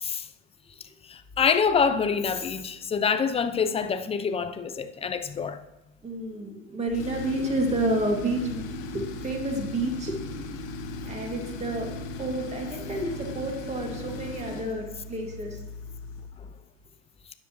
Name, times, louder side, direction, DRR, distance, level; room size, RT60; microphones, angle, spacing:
voice 1, 1.0-5.6 16.4-16.5, left 6 dB, 15° left, 0.6 m, -26 dB
voice 2, 6.0-8.6 8.9-11.9 12.2-15.6, right 1 dB, 15° right, 2.4 m, -30 dB
Tools, 6.9-16.4, left 2 dB, 85° left, 1.6 m, -37 dB
12.5 x 9.8 x 3.1 m
hypercardioid pair, 110°, 39 cm